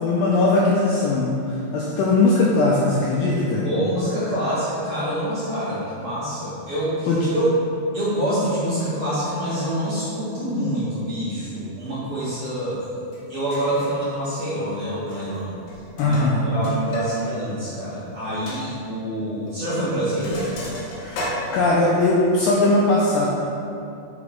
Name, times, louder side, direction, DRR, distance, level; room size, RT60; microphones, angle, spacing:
voice 1, 0.0-3.7 7.1-7.3 16.0-16.4 21.0-23.3, left 2 dB, 85° left, -4 dB, 2.0 m, -20 dB
voice 2, 3.6-7.6 7.9-12.9 13.3-15.5 16.0-16.2 16.4-20.5, right 1 dB, 50° right, -11 dB, 1.9 m, -26 dB
Sink (filling or washing), 13.1-13.2 13.5-14.0 15.0-15.4 15.7-17.1 17.4-17.5 17.9-18.0 18.5-18.6 19.5-19.7 19.9-22.1, left 1 dB, 60° left, 2.4 m, -34 dB
6.4 x 6.3 x 4.5 m, 2.6 s
omnidirectional pair, 4.8 m